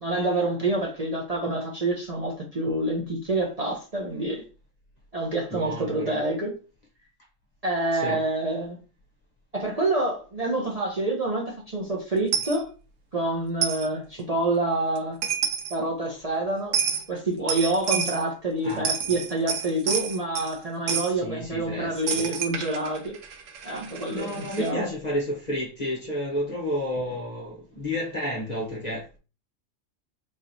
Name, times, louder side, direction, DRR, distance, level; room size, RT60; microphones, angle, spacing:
voice 1, 0.0-4.4 5.1-6.5 7.6-8.8 9.5-12.7 13.1-15.2 15.7-16.8 17.1-23.2 23.6-24.9, right 2 dB, 35° right, 0.7 m, -27 dB
voice 2, 5.5-6.2 7.9-8.2 18.6-19.1 21.2-22.3 24.1-29.2, equal, 40° left, 0.8 m, -31 dB
Coin (dropping), 12.3-12.6 13.6-13.9 15.0-15.1 15.2-15.8 16.7-17.0 17.5-18.2 18.7-20.5 20.9-21.1 22.1-24.7, right 7 dB, 75° right, 1.0 m, -29 dB
4.0 x 3.0 x 2.6 m
omnidirectional pair, 1.4 m